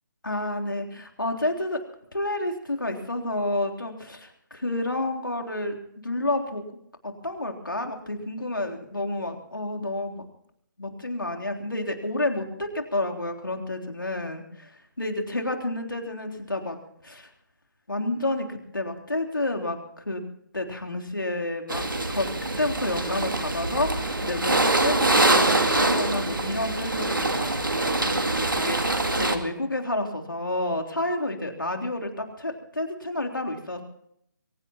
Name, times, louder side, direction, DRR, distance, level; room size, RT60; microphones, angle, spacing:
voice 1, 0.2-1.8 2.1-5.8 6.0-6.6 7.0-10.2 10.8-16.8 17.0-17.3 17.9-20.2 20.5-22.3 22.6-33.8, left 2 dB, 85° left, 3 dB, 3.4 m, -30 dB
sound 1, 21.7-29.4, right 2 dB, 80° right, 2.4 m, -24 dB
23.0 x 19.0 x 2.9 m, 0.71 s
figure-of-eight pair, 150°, 11 cm